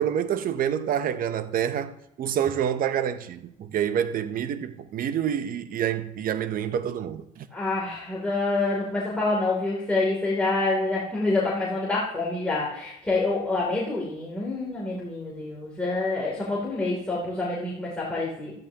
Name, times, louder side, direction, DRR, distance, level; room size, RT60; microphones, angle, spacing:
voice 1, 0.0-7.5, right 9 dB, 55° right, 0.7 m, -27 dB
voice 2, 7.5-18.5, left 2 dB, 5° left, 3.0 m, -27 dB
14.0 x 13.0 x 2.9 m
cardioid pair, 110°, 17 cm